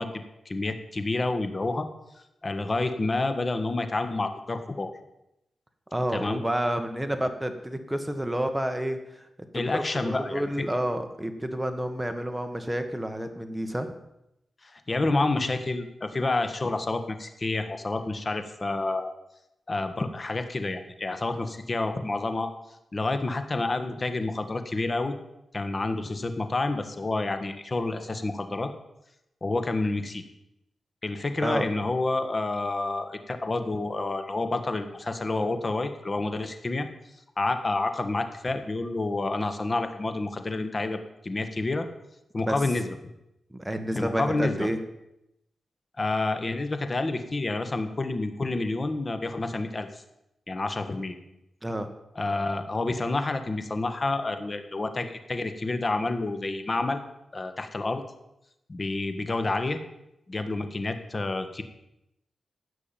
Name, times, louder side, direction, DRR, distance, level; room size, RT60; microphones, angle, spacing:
voice 1, 0.0-1.9 2.4-4.9 6.1-6.4 9.5-10.6 14.6-19.1 19.7-22.5 22.9-25.1 25.5-28.7 29.4-30.2 31.0-36.9 37.4-41.9 42.3-42.9 43.9-44.7 46.0-50.0 50.5-51.2 52.1-57.0 57.3-58.0 58.7-59.8 60.3-61.6, left 2 dB, 35° left, 8 dB, 1.6 m, -29 dB
voice 2, 5.9-9.3 9.5-13.9 31.4-31.7 42.4-42.5 43.5-44.8 51.6-51.9, right 1 dB, 10° right, 6 dB, 1.7 m, -30 dB
16.0 x 6.2 x 8.9 m, 0.86 s
wide cardioid pair, 95°, 0 cm